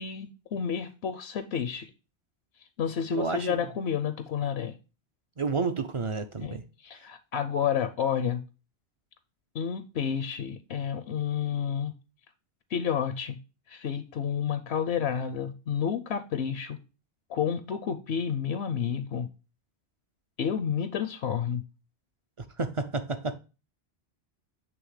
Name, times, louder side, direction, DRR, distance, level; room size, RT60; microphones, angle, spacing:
voice 1, 0.0-1.9 2.8-4.8 6.4-6.6 6.8-8.4 9.5-11.9 12.7-13.4 13.7-16.8 17.3-19.3 20.4-21.6, left 8 dB, 75° left, 0.8 m, -30 dB
voice 2, 3.1-3.6 5.4-6.6 22.4-23.3, right 4 dB, 45° right, 0.4 m, -30 dB
7.9 x 3.3 x 4.7 m
omnidirectional pair, 1.1 m